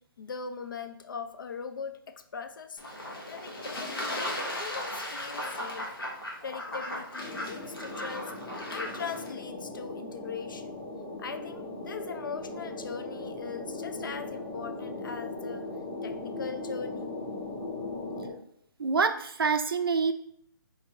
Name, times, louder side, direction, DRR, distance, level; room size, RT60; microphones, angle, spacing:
voice 1, 0.2-5.9 6.4-8.3 8.7-10.8 11.2-15.7 16.0-17.1, left 6 dB, 65° left, 9 dB, 0.5 m, -40 dB
Fowl / Bird / Water, 2.8-9.3, left 1 dB, 80° left, 1.4 m, -37 dB
sound 1, 7.2-18.3, left 2 dB, 15° left, 1.1 m, -38 dB
voice 2, 18.8-20.1, right 5 dB, 80° right, 8 dB, 0.4 m, -26 dB
4.0 x 2.6 x 4.5 m, 0.70 s
figure-of-eight pair, 145°, 12 cm